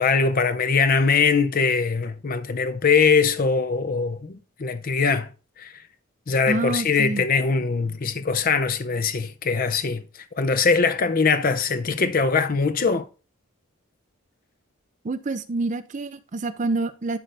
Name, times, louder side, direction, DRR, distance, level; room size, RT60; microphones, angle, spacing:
voice 1, 0.0-5.3 5.6-5.7 6.3-10.0 10.3-13.1, left 5 dB, 40° left, 0.5 m, -22 dB
voice 2, 6.5-7.2 15.0-17.2, right 2 dB, 35° right, 0.5 m, -27 dB
11.5 x 3.9 x 3.3 m
head